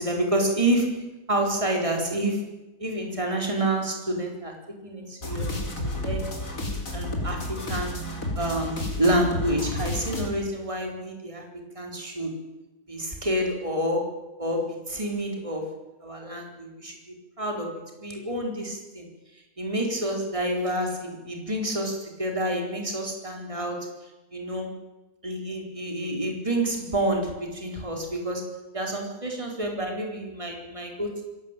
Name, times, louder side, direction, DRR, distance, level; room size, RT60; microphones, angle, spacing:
voice 1, 0.0-2.5 2.8-5.5 5.8-6.3 6.9-8.0 8.4-11.4 11.7-12.4 12.9-15.7 16.0-17.0 17.4-19.1 19.3-23.9 24.3-24.7 25.2-31.2, right 1 dB, 20° right, 2 dB, 4.4 m, -28 dB
sound 1, 5.2-10.3, left 1 dB, 50° left, 5.0 m, -31 dB
27.5 x 16.5 x 9.1 m, 1.1 s
omnidirectional pair, 1.7 m